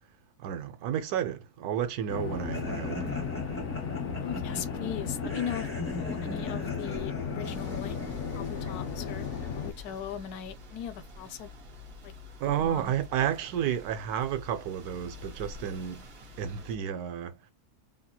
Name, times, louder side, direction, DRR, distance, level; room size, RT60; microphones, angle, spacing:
voice 1, 0.4-3.4 12.4-16.1 16.4-17.4, right 9 dB, 80° right, 1.1 m, -31 dB
sound 1, 2.1-9.7, left 6 dB, 65° left, 0.8 m, -35 dB
sound 2, 2.5-10.2, left 1 dB, 10° left, 0.7 m, -40 dB
voice 2, 4.2-5.7 6.0-8.0 8.3-9.3 9.5-11.5 12.0-12.1 12.4-12.9, left 9 dB, 80° left, 1.1 m, -38 dB
sound 3, 7.4-16.8, left 2 dB, 55° right, 0.7 m, -47 dB
2.8 x 2.8 x 2.2 m
omnidirectional pair, 1.6 m